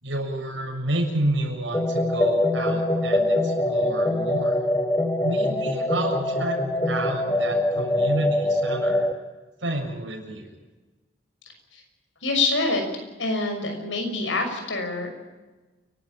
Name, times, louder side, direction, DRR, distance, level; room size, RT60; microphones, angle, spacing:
voice 1, 0.0-4.6 5.2-6.6 6.8-9.1 9.6-10.5, right 1 dB, 85° right, 2 dB, 7.2 m, -29 dB
sound 1, 1.7-9.1, left 1 dB, 10° left, 1.3 m, -23 dB
voice 2, 12.2-12.9 13.2-15.1, left 3 dB, 85° left, 4 dB, 6.2 m, -25 dB
29.5 x 12.5 x 9.0 m, 1.2 s
head